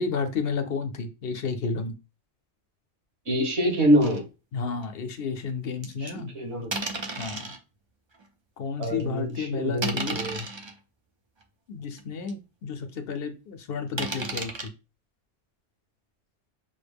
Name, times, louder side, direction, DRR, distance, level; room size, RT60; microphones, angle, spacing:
voice 1, 0.0-1.9 4.5-6.3 7.2-7.5 8.6-10.2 11.7-14.5, left 5 dB, 65° left, 7 dB, 0.8 m, -31 dB
voice 2, 3.3-4.2 6.0-6.7 8.8-10.4, equal, 70° right, -1 dB, 2.0 m, -25 dB
sound 1, 4.0-4.2 4.8-4.9 5.8-6.1 6.7-7.6 8.2-8.3 8.8-9.0 9.8-10.7 11.4-11.5 12.0-12.1 12.3-12.4 14.0-14.7, right 3 dB, 40° right, 0.4 m, -33 dB
5.5 x 2.1 x 3.4 m, 0.29 s
omnidirectional pair, 1.2 m